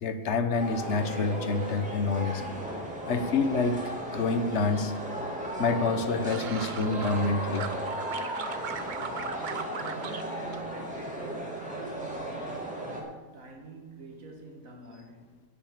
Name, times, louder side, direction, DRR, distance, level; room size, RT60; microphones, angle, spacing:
voice 1, 0.0-2.4 3.1-3.8 4.1-4.9 5.6-7.6, left 3 dB, 60° left, 1.2 m, -27 dB
sound 1, 0.6-13.0, right 1 dB, 5° right, 2.3 m, -36 dB
sound 2, 5.8-7.3 7.5-10.2 10.5-11.3 11.6-12.0, right 6 dB, 45° right, 0.7 m, -39 dB
voice 2, 9.4-15.4, right 4 dB, 85° right, 2.1 m, -45 dB
10.0 x 6.8 x 8.8 m
omnidirectional pair, 1.4 m